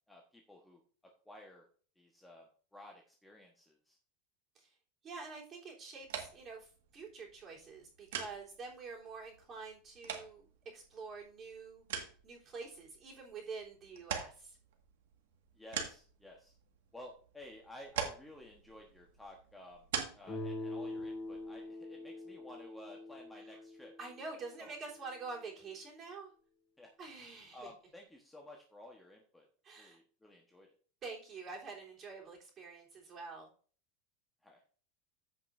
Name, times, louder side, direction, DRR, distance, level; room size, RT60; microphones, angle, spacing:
voice 1, 0.1-0.8 1.2-1.6 2.0-4.0 15.5-16.5 16.9-19.8 20.1-23.9 24.6-24.7 26.8-26.9 27.5-29.5 29.8-30.7 34.4-34.6, left 1 dB, 5° left, 0 dB, 1.2 m, -54 dB
voice 2, 5.0-10.5 10.7-11.8 12.2-14.6 23.4-23.6 24.0-26.3 27.0-27.7 29.6-30.0 31.0-33.5, right 4 dB, 30° right, -2 dB, 3.5 m, -47 dB
sound 1, 6.0-21.7, right 8 dB, 85° right, 1.8 m, -46 dB
Guitar, 20.3-25.1, left 2 dB, 25° left, 4.8 m, -44 dB
15.0 x 5.4 x 2.6 m, 0.42 s
supercardioid pair, 150°, 0 cm